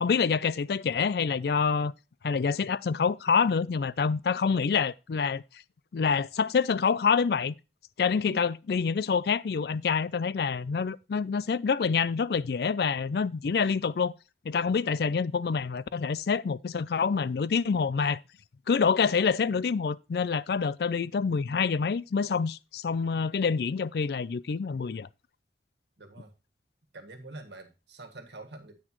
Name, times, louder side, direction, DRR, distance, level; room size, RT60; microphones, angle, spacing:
voice 1, 0.0-1.9 2.2-5.4 5.9-7.5 8.0-14.1 14.4-18.2 18.7-25.1, left 5 dB, 65° left, 0.4 m, -27 dB
voice 2, 26.0-26.3 26.9-28.7, right 2 dB, 80° right, 1.6 m, -45 dB
9.8 x 8.6 x 3.0 m
head